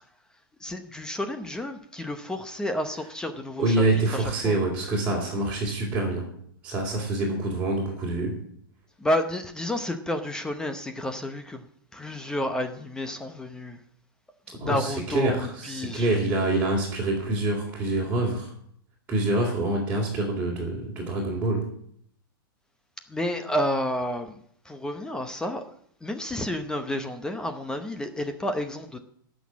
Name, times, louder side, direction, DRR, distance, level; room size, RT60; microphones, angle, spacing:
voice 1, 0.6-3.8 4.1-4.5 9.0-11.6 11.9-13.8 14.6-16.1 23.1-24.4 24.7-25.6 26.0-29.0, left 1 dB, 5° left, 8 dB, 0.8 m, -30 dB
voice 2, 3.6-6.3 6.6-8.4 14.6-18.5 19.1-21.7, right 2 dB, 10° right, -6 dB, 3.5 m, -26 dB
18.0 x 6.3 x 7.4 m, 0.65 s
hypercardioid pair, 150°, 12 cm